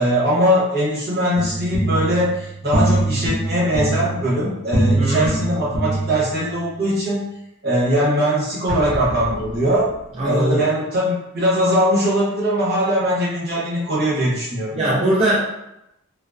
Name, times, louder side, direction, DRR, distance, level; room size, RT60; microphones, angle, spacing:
voice 1, 0.0-7.2 7.6-9.9 10.2-15.0, equal, 50° right, -7 dB, 1.1 m, -20 dB
sound 1, 1.4-6.6, right 1 dB, 30° left, 0.4 m, -23 dB
voice 2, 5.0-5.3 10.2-10.6 14.7-15.4, right 1 dB, 30° right, -8 dB, 0.4 m, -20 dB
Explosion, 8.7-10.3, equal, 5° right, 1.0 m, -31 dB
2.6 x 2.0 x 2.3 m, 0.86 s
head